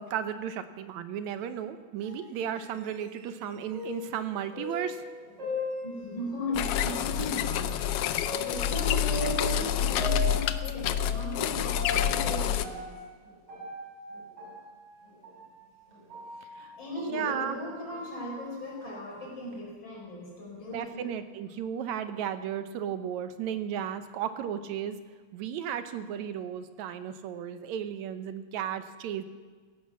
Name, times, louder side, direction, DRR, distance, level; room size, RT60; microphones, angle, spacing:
voice 1, 0.0-5.0 16.5-17.6 20.7-25.0 25.3-29.2, right 9 dB, 80° right, 10 dB, 2.2 m, -34 dB
sound 1, 2.0-6.6 7.1-7.2 8.2-17.2 17.6-19.5, left 1 dB, 45° right, 6.7 m, -40 dB
voice 2, 5.8-12.9 16.7-21.1, left 1 dB, 40° left, -3 dB, 5.6 m, -37 dB
sound 2, 6.5-12.7, left 10 dB, 75° left, 1.4 m, -28 dB
16.0 x 12.0 x 7.3 m, 1.5 s
omnidirectional pair, 3.3 m